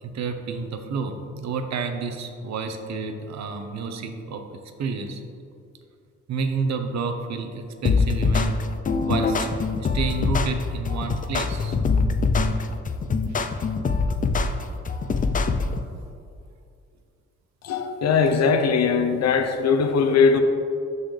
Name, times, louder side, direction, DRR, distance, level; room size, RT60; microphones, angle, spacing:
voice 1, 0.0-5.2 6.3-8.6 9.1-9.5 9.9-11.8, right 4 dB, 65° right, 6 dB, 0.8 m, -30 dB
sound 1, 7.8-15.8, left 4 dB, 30° left, 0.4 m, -23 dB
voice 2, 17.6-20.4, left 5 dB, 60° left, 7 dB, 0.7 m, -20 dB
12.0 x 4.1 x 3.3 m, 2.4 s
cardioid pair, 90°, 30 cm